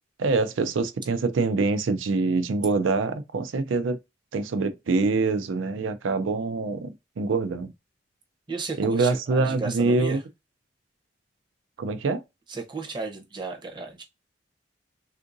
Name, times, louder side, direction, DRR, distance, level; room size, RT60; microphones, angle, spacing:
voice 1, 0.2-4.0 4.3-7.7 8.8-10.2 11.8-12.2, right 3 dB, 80° right, 0.4 m, -25 dB
voice 2, 8.5-10.2 12.5-14.0, right 4 dB, 25° right, 0.7 m, -34 dB
3.6 x 2.5 x 2.5 m
head